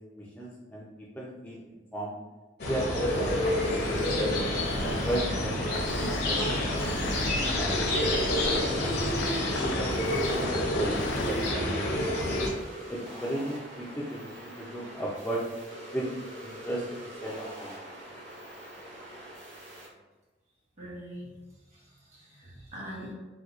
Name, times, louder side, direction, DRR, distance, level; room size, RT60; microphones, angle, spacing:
voice 1, 0.2-1.6 1.9-2.1 2.7-4.3 4.8-5.5 5.9-8.9 9.5-10.5 10.7-11.9 12.3-12.4 12.9-15.4 15.9-16.1 16.4-17.8, right 1 dB, 10° left, -6 dB, 0.4 m, -36 dB
sound 1, 2.6-12.5, left 1 dB, 60° left, 0.7 m, -28 dB
sound 2, 3.1-19.9, right 1 dB, 75° right, 1.1 m, -44 dB
sound 3, 5.7-11.3, left 4 dB, 85° left, 0.4 m, -38 dB
voice 2, 20.8-21.3 21.7-23.1, equal, 40° right, -6 dB, 1.3 m, -43 dB
4.2 x 2.2 x 2.4 m, 1.2 s
head